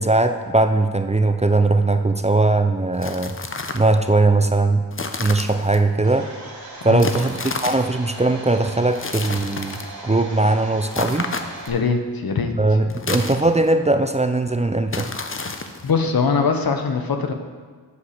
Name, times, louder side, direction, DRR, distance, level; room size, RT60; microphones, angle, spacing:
voice 1, 0.0-3.3 3.7-4.8 5.2-6.3 6.8-11.3 12.6-15.1, right 2 dB, 15° right, 7 dB, 0.5 m, -19 dB
sound 1, 2.9-3.9 4.9-5.8 7.0-7.9 8.9-9.9 10.9-11.8 12.9-13.8 14.9-15.9, left 3 dB, 35° left, 0.8 m, -30 dB
Domestic sounds home sounds, 6.0-11.7, right 2 dB, 65° right, 2.3 m, -38 dB
voice 2, 11.7-12.5 15.8-17.3, left 5 dB, 65° left, 5 dB, 1.0 m, -21 dB
8.3 x 5.0 x 6.6 m, 1.5 s
cardioid pair, 45°, 38 cm